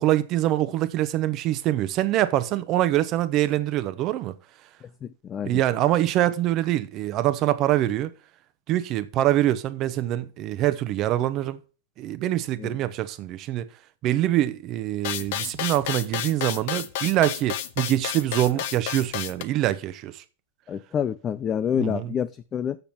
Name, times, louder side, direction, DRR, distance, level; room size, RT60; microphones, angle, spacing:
voice 1, 0.0-4.3 5.4-8.1 8.7-11.6 12.0-13.7 14.0-20.2 21.8-22.1, right 13 dB, 35° right, 0.8 m, -24 dB
voice 2, 5.3-5.6 12.6-12.7 20.7-22.8, left 8 dB, 20° left, 0.4 m, -27 dB
sound 1, 15.0-19.4, left 11 dB, 55° left, 1.0 m, -31 dB
7.1 x 6.9 x 6.0 m
supercardioid pair, 155°, 0 cm